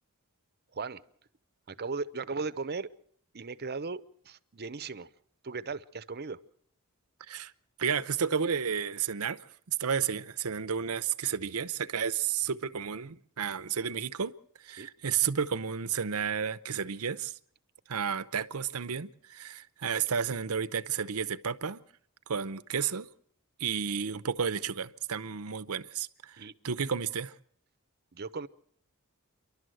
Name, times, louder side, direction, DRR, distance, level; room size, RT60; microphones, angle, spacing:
voice 1, 1.7-2.9 3.3-5.1 5.4-6.4 14.8-14.9 26.4-26.5 28.1-28.5, right 4 dB, 50° right, 0.8 m, -37 dB
voice 2, 7.8-9.4 9.7-14.3 14.6-17.3 17.9-21.8 22.3-23.1 23.6-27.3, right 7 dB, 80° right, 0.8 m, -32 dB
29.0 x 12.0 x 7.8 m
head